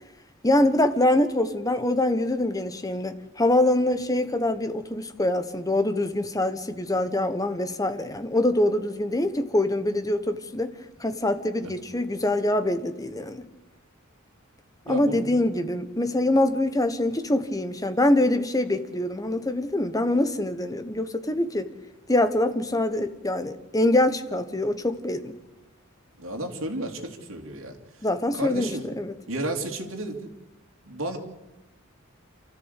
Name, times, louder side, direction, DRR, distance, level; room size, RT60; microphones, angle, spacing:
voice 1, 0.4-10.7 11.0-13.4 14.9-21.7 22.1-25.3 28.0-28.7 29.0-29.1, left 1 dB, 15° left, 1.3 m, -24 dB
voice 2, 14.8-15.5 26.2-28.1 28.3-28.9 29.3-30.3 30.9-31.2, right 1 dB, 70° right, 3.0 m, -33 dB
28.0 x 13.5 x 8.4 m
head